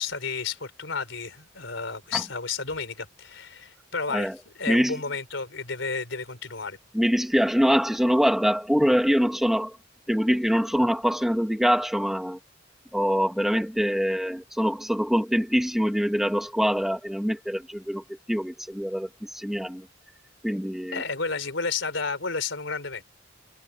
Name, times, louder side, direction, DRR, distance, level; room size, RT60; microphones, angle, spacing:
voice 1, 0.0-4.3 4.6-6.8 20.9-23.0, left 4 dB, 75° left, 4.2 m, -31 dB
voice 2, 4.7-5.0 6.9-9.8 10.1-12.4 12.9-19.9 20.4-21.0, equal, ahead, 1.5 m, -24 dB
head